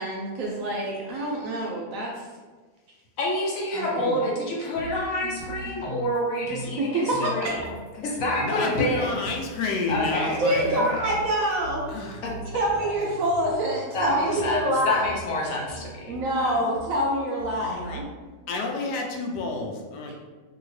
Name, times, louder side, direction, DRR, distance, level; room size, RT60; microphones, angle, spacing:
voice 1, 0.0-2.1 3.7-4.1 6.8-7.5 10.4-11.9 12.5-15.2 16.1-18.1, right 1 dB, 70° right, -2 dB, 0.9 m, -26 dB
voice 2, 3.2-7.6 8.0-9.2 9.9-10.4 10.7-11.2 12.8-13.0 13.9-16.6, left 1 dB, 65° left, -3 dB, 0.9 m, -28 dB
sound 1, 4.7-18.1, right 1 dB, 85° right, 1.2 m, -41 dB
voice 3, 8.4-10.9 11.9-12.2 17.5-18.0 18.5-20.1, left 3 dB, 85° left, 1 dB, 1.2 m, -30 dB
2.8 x 2.7 x 3.1 m, 1.3 s
omnidirectional pair, 1.8 m